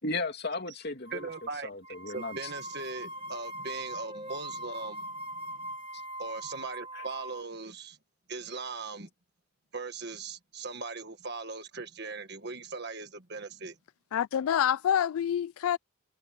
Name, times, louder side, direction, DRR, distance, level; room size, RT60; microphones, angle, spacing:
voice 1, 0.0-1.3 1.6-2.4 6.9-7.0, left 2 dB, 50° left, 2.8 m, -35 dB
sound 1, 1.1-1.5 1.8-7.4, right 1 dB, 25° right, 1.8 m, -41 dB
voice 2, 1.1-1.7 2.1-5.7 6.2-8.0 8.3-9.1 9.7-13.8, right 4 dB, 50° right, 1.5 m, -39 dB
voice 3, 14.1-15.8, left 9 dB, 80° left, 0.3 m, -27 dB
head